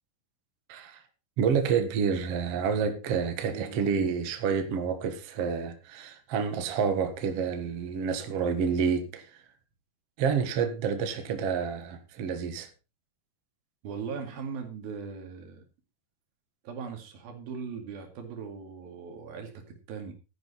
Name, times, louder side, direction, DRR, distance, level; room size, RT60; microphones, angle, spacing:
voice 1, 0.7-1.0 1.4-9.3 10.2-12.7, right 6 dB, 50° right, 2.2 m, -28 dB
voice 2, 3.5-3.8 13.8-15.6 16.6-20.1, right 6 dB, 75° right, 4.1 m, -39 dB
12.5 x 10.5 x 4.2 m
omnidirectional pair, 4.3 m